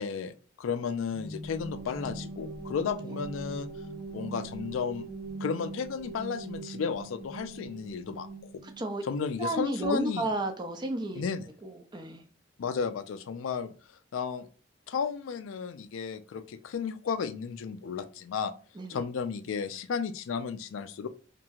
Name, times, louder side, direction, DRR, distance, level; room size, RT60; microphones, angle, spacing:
voice 1, 0.0-3.7 4.1-5.1 5.4-8.6 9.0-10.3 11.1-11.5 12.6-13.7 14.1-14.5 14.9-18.5 18.9-21.1, left 6 dB, 85° left, 11 dB, 0.4 m, -33 dB
sound 1, 1.1-8.9, right 2 dB, 85° right, 1.2 m, -41 dB
voice 2, 8.6-9.0 9.4-11.2 11.6-12.2 18.8-19.0, right 2 dB, 25° right, 6 dB, 0.4 m, -32 dB
2.9 x 2.6 x 2.3 m, 0.38 s
head